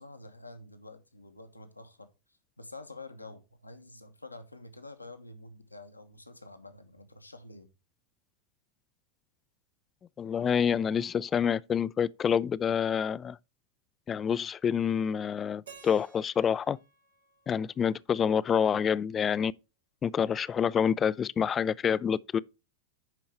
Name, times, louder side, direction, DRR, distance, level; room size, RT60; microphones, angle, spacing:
voice 1, 0.0-2.1 2.6-7.7, left 2 dB, 85° left, 1.1 m, -48 dB
voice 2, 10.2-13.4 14.1-16.8 17.5-19.5 20.0-22.4, left 7 dB, 25° left, 0.3 m, -27 dB
Keyboard (musical), 15.7-18.6, right 6 dB, 70° right, 2.1 m, -55 dB
10.5 x 4.6 x 4.5 m
figure-of-eight pair, 90°, 0 cm